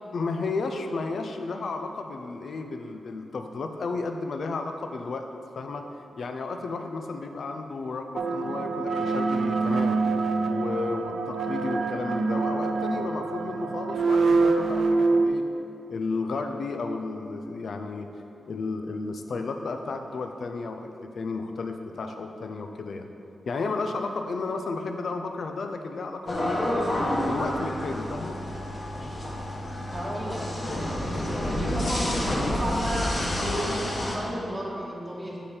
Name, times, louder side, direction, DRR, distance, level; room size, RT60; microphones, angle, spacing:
voice 1, 0.1-5.3 5.6-5.9 6.2-10.0 10.5-15.4 15.9-18.1 18.5-23.1 23.5-26.6 27.2-28.4, left 3 dB, 65° left, 5 dB, 0.5 m, -33 dB
sound 1, 8.1-15.3, right 3 dB, 70° right, 0.4 m, -25 dB
sound 2, 26.3-34.2, left 1 dB, 35° left, 1.2 m, -29 dB
voice 2, 29.9-35.4, equal, 15° right, -6 dB, 1.3 m, -34 dB
8.6 x 5.0 x 4.3 m, 2.7 s
wide cardioid pair, 125°, 0 cm